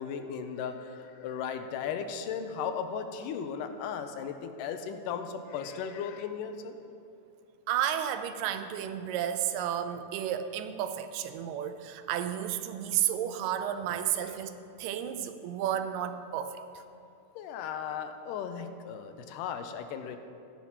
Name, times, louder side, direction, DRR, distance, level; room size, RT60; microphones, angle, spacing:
voice 1, 0.0-6.8 14.0-14.4 17.4-20.2, left 7 dB, 85° left, 7 dB, 2.2 m, -36 dB
voice 2, 7.7-16.6, right 10 dB, 90° right, 9 dB, 2.2 m, -32 dB
15.0 x 10.0 x 2.9 m, 2.6 s
omnidirectional pair, 3.8 m